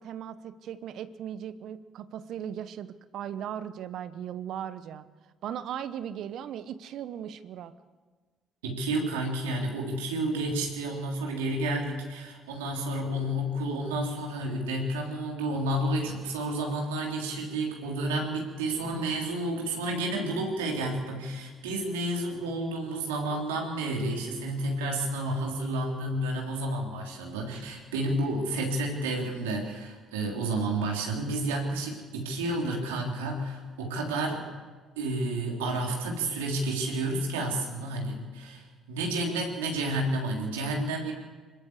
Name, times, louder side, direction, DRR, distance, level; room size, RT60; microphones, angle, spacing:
voice 1, 0.0-5.1 5.4-7.7, right 9 dB, 65° right, 13 dB, 1.0 m, -38 dB
voice 2, 8.6-34.5 35.0-41.1, right 1 dB, 85° right, 0 dB, 3.5 m, -30 dB
25.0 x 13.5 x 8.2 m, 1.4 s
hypercardioid pair, 55°, 0 cm